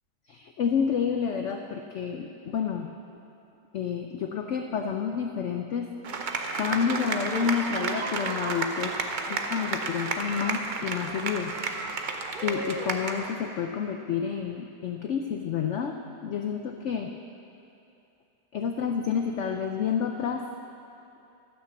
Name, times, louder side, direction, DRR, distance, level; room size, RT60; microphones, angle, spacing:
voice 1, 0.3-2.9 3.7-5.9 6.6-8.9 9.3-11.6 12.0-17.1 18.5-20.5, left 7 dB, 75° left, 4 dB, 0.6 m, -29 dB
sound 1, 6.0-13.3, right 3 dB, 60° right, 0.5 m, -31 dB
13.0 x 6.3 x 7.1 m, 2.8 s
omnidirectional pair, 1.8 m